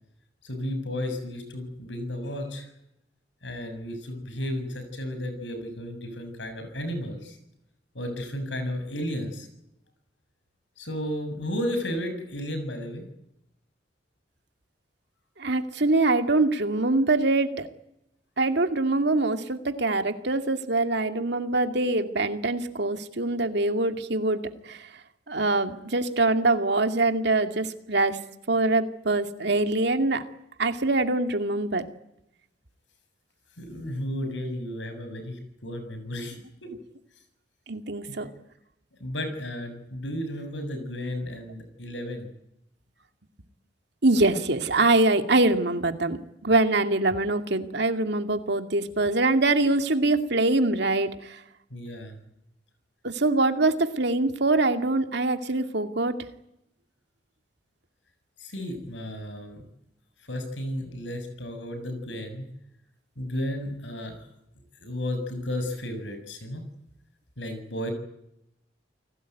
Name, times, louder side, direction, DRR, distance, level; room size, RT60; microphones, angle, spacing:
voice 1, 0.4-2.7 3.4-7.4 7.9-9.5 10.8-13.0 33.6-36.4 36.6-36.7 38.1-38.2 39.0-42.3 51.7-52.2 58.4-59.6 60.3-62.5 63.2-64.2 64.8-66.6 67.4-67.9, left 1 dB, 80° left, 8 dB, 7.2 m, -33 dB
voice 2, 15.4-17.7 18.4-24.9 25.3-28.2 28.5-30.2 30.6-31.8 37.7-38.3 44.0-51.4 53.0-56.2, right 2 dB, 65° right, 7 dB, 2.4 m, -24 dB
29.5 x 19.0 x 9.3 m, 0.83 s
head